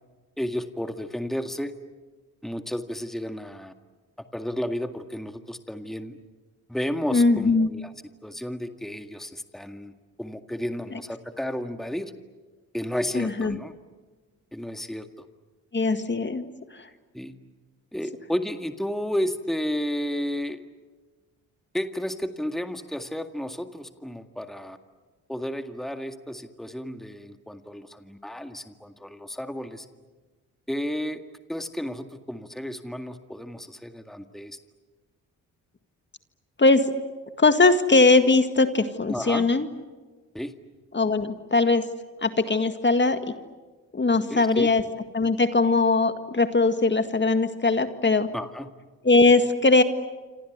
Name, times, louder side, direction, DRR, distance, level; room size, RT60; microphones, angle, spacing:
voice 1, 0.4-1.7 2.4-3.7 4.3-6.2 6.7-7.9 8.2-9.9 10.2-12.1 12.7-13.7 14.5-15.3 17.1-17.3 17.9-20.6 21.7-24.8 25.3-29.9 30.7-31.2 31.5-34.6 39.1-39.5 40.3-40.5 44.3-44.7 48.3-48.7, equal, ahead, 7 dB, 1.9 m, -32 dB
voice 2, 7.1-7.7 13.1-13.6 15.7-16.5 36.6-36.9 37.4-39.7 40.9-41.9 42.2-43.2 43.9-44.8 45.1-48.3 49.0-49.8, left 3 dB, 30° left, 8 dB, 2.0 m, -20 dB
27.5 x 26.5 x 8.1 m, 1.3 s
supercardioid pair, 55°, 38 cm